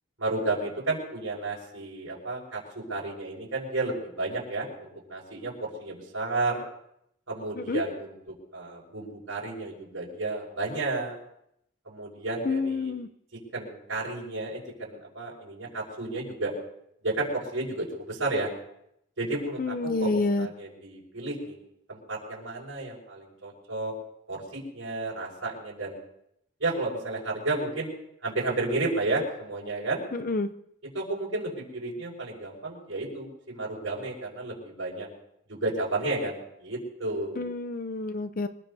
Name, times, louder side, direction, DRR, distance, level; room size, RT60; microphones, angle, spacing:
voice 1, 0.2-6.6 7.3-8.1 8.5-11.2 11.9-12.9 13.5-16.5 17.0-18.5 19.2-21.6 21.9-23.9 24.3-26.0 26.6-27.9 28.2-30.0 30.9-35.1 35.5-37.4, right 2 dB, 85° right, -4 dB, 5.6 m, -32 dB
voice 2, 12.5-13.1 19.6-20.5 30.1-30.5 37.4-38.5, left 3 dB, 45° left, 9 dB, 0.6 m, -28 dB
25.5 x 20.0 x 2.8 m, 0.75 s
head